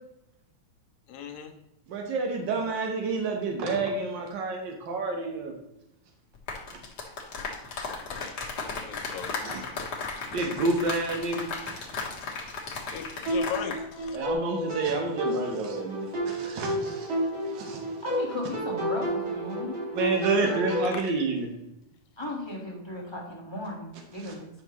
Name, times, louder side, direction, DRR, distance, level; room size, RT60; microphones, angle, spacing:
voice 1, 1.1-1.5 8.1-8.3 8.7-9.3 12.9-14.2 20.8-21.0, left 7 dB, 75° left, 5 dB, 2.0 m, -38 dB
voice 2, 1.9-5.5 6.7-6.8 9.4-9.6 10.3-12.0 14.1-17.1 17.5-17.8 19.9-21.5 24.2-24.3, right 3 dB, 75° right, 2 dB, 1.0 m, -29 dB
sound 1, 6.3-13.8 14.1-14.3, left 4 dB, 50° left, 1.3 m, -35 dB
sound 2, 13.3-20.9, right 1 dB, 55° right, 3.2 m, -31 dB
voice 3, 18.0-19.8 20.4-20.6 22.2-24.5, left 1 dB, 20° left, -4 dB, 0.8 m, -36 dB
9.5 x 5.9 x 3.0 m, 0.86 s
omnidirectional pair, 3.4 m